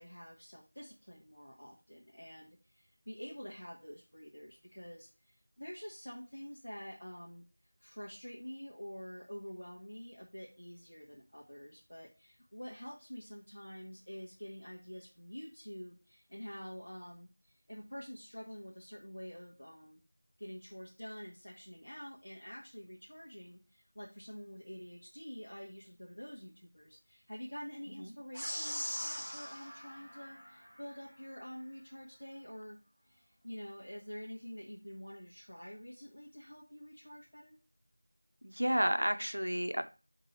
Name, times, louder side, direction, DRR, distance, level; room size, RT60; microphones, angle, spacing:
voice 1, 0.0-7.4 7.8-20.0 20.4-32.8 33.0-37.6, equal, 55° left, -5 dB, 1.8 m, -48 dB
sound 1, 28.3-31.0, equal, ahead, 0.9 m, -41 dB
voice 2, 38.4-39.8, equal, 70° right, 8 dB, 0.8 m, -31 dB
7.5 x 3.7 x 4.7 m, 0.32 s
figure-of-eight pair, 175°, 0 cm